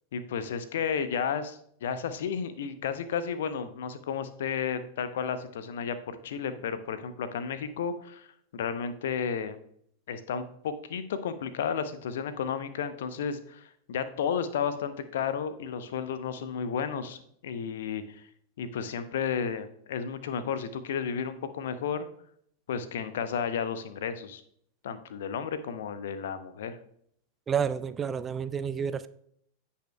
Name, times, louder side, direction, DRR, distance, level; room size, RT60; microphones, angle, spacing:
voice 1, 0.1-8.3 8.5-9.6 10.1-18.2 18.6-22.1 22.7-24.4 24.8-26.8, left 7 dB, 60° left, 12 dB, 0.7 m, -32 dB
voice 2, 27.5-29.1, right 7 dB, 20° right, 14 dB, 0.4 m, -30 dB
16.0 x 5.6 x 2.2 m, 0.68 s
figure-of-eight pair, 90°, 0 cm